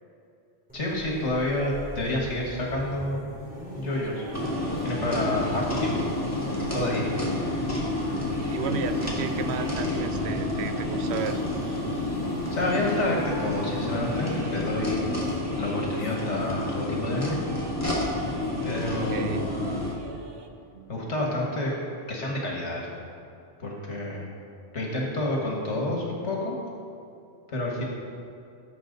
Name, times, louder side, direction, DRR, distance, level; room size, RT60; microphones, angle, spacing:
voice 1, 0.7-3.2 3.8-4.3 4.8-6.1 6.7-7.6 12.5-15.0 15.6-17.4 18.6-19.5 20.9-21.7 22.1-22.9 23.6-24.3 24.7-26.6 27.5-27.8, left 1 dB, 80° left, -2 dB, 1.9 m, -29 dB
sound 1, 0.7-14.4, equal, 5° right, 2.9 m, -42 dB
sound 2, 4.0-16.8 17.1-20.5, right 3 dB, 25° right, 0.7 m, -43 dB
sound 3, 4.3-19.9, left 2 dB, 15° left, 1.9 m, -29 dB
voice 2, 8.5-11.4 19.1-19.5 20.7-20.9, right 6 dB, 70° right, 9 dB, 0.9 m, -33 dB
17.0 x 7.2 x 3.9 m, 2.6 s
omnidirectional pair, 1.2 m